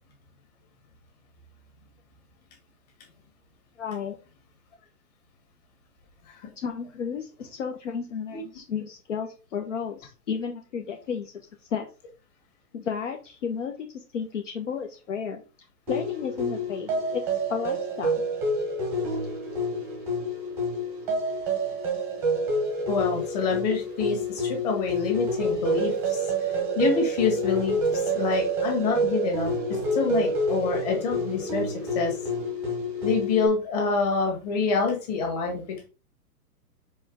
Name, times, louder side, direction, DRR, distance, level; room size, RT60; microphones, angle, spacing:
voice 1, 3.8-4.2 6.6-11.9 12.7-15.4 15.9-17.2 17.5-18.1, left 6 dB, 50° left, 3 dB, 1.1 m, -33 dB
sound 1, 15.9-33.5, right 1 dB, 5° right, 1.0 m, -28 dB
voice 2, 22.9-26.2 26.8-32.2 33.0-35.9, left 4 dB, 25° left, 2 dB, 2.1 m, -27 dB
5.6 x 5.4 x 3.5 m, 0.32 s
hypercardioid pair, 175°, 48 cm